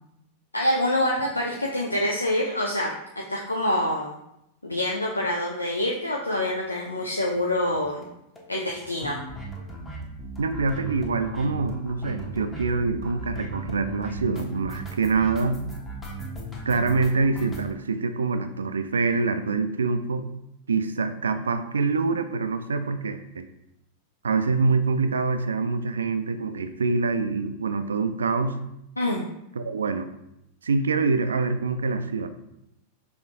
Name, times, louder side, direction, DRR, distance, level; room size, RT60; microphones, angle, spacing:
voice 1, 0.5-4.1 4.6-8.1 8.5-9.2 29.0-29.3, left 1 dB, 85° left, -1 dB, 0.4 m, -26 dB
sound 1, 6.9-7.1 7.4-7.5 7.7-7.8 8.0-8.1 8.4-17.7, right 2 dB, 15° left, 0.9 m, -37 dB
voice 2, 10.4-15.6 16.7-20.3 20.7-23.5 24.2-28.6 29.6-30.1 30.6-32.3, right 4 dB, 70° right, 9 dB, 0.3 m, -25 dB
5.6 x 3.1 x 2.6 m, 0.83 s
figure-of-eight pair, 90°, 0 cm